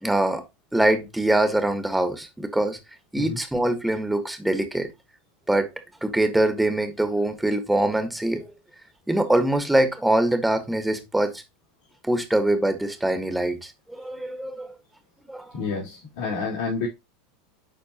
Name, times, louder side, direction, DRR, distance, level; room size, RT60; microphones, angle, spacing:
voice 1, 0.0-0.4 0.7-2.8 3.1-4.9 5.5-5.7 6.0-8.4 9.1-11.4 12.0-14.7 15.3-15.5, right 1 dB, 5° right, 1.5 m, -23 dB
voice 2, 15.5-16.9, left 4 dB, 65° left, 3.3 m, -29 dB
11.0 x 4.2 x 2.9 m
hypercardioid pair, 85°, 0 cm